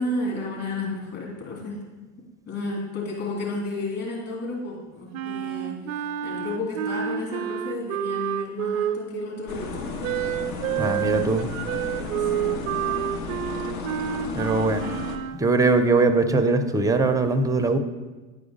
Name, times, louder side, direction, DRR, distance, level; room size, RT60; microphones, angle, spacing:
voice 1, 0.0-1.8 2.4-9.9 12.2-12.7, left 2 dB, 40° left, -3 dB, 3.0 m, -32 dB
Wind instrument woodwind instrument, 5.1-9.3 10.0-15.4, right 10 dB, 70° right, 0.6 m, -29 dB
sound 1, 9.5-15.2, left 4 dB, 65° left, 1.3 m, -33 dB
voice 2, 10.8-11.5 14.3-15.0 15.3-17.8, right 3 dB, 10° right, 8 dB, 0.5 m, -21 dB
9.5 x 4.9 x 5.1 m, 1.2 s
hypercardioid pair, 90°, 41 cm